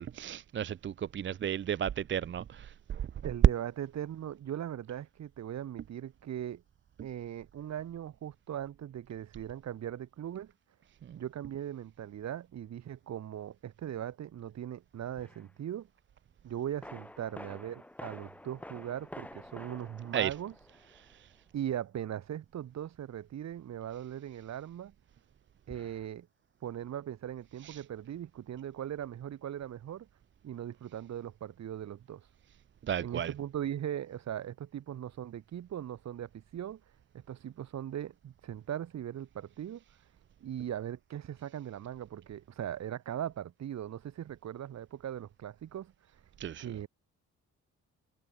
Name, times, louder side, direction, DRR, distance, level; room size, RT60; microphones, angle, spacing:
voice 1, 0.0-3.1 11.0-11.2 20.1-20.3 21.0-21.3 27.6-27.8 32.8-33.3 46.4-46.7, right 9 dB, 40° right, 0.6 m, -35 dB
voice 2, 3.2-6.6 7.0-10.5 11.1-15.9 16.4-20.5 21.5-24.9 25.7-26.3 26.6-30.1 30.4-32.3 33.0-36.8 37.1-39.8 40.4-45.9 46.6-46.9, right 10 dB, 60° right, 2.4 m, -39 dB
sound 1, 15.2-15.5 16.8-21.2 25.7-26.1, left 1 dB, 5° left, 1.7 m, -49 dB
cardioid pair, 145°, 30 cm